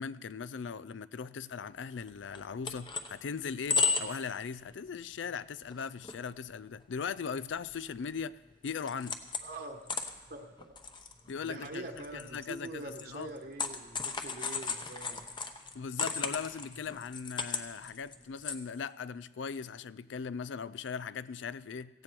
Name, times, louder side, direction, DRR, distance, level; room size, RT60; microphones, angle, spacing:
voice 1, 0.0-9.2 11.3-11.9 12.1-13.3 15.7-22.0, left 6 dB, 85° left, 0.4 m, -39 dB
sound 1, 2.1-2.2 2.3-3.1 3.5-4.3 4.6-4.8 5.2-5.3 5.7-6.2 6.5-6.6 7.2-8.2 8.5-9.6 9.9-18.6, left 5 dB, 25° left, 0.9 m, -35 dB
voice 2, 9.4-9.8 10.3-10.7 11.4-15.3, right 2 dB, 55° right, 1.3 m, -44 dB
17.5 x 15.5 x 4.6 m
head